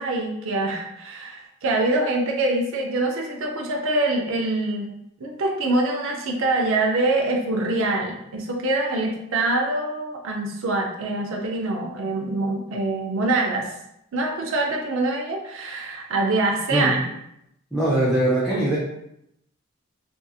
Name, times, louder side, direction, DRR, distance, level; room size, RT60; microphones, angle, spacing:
voice 1, 0.0-4.9 5.2-13.7 14.1-17.0, right 2 dB, 65° right, 1 dB, 0.5 m, -24 dB
voice 2, 17.7-18.8, right 1 dB, ahead, -9 dB, 0.5 m, -21 dB
2.6 x 2.6 x 2.3 m, 0.79 s
head